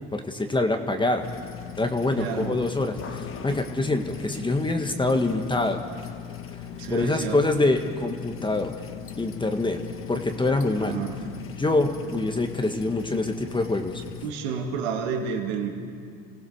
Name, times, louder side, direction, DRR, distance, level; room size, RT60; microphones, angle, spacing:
voice 1, 0.1-1.2 1.8-5.8 6.9-8.8 9.2-9.8 10.1-11.0 11.6-14.0, left 2 dB, 15° left, 5 dB, 1.6 m, -25 dB
sound 1, 1.2-14.3, left 9 dB, 45° left, 1.5 m, -38 dB
voice 2, 2.2-2.5 6.7-7.4 10.8-11.2 14.2-15.7, right 6 dB, 85° right, 2 dB, 2.5 m, -30 dB
26.5 x 16.0 x 6.6 m, 2.1 s
supercardioid pair, 80°, 30 cm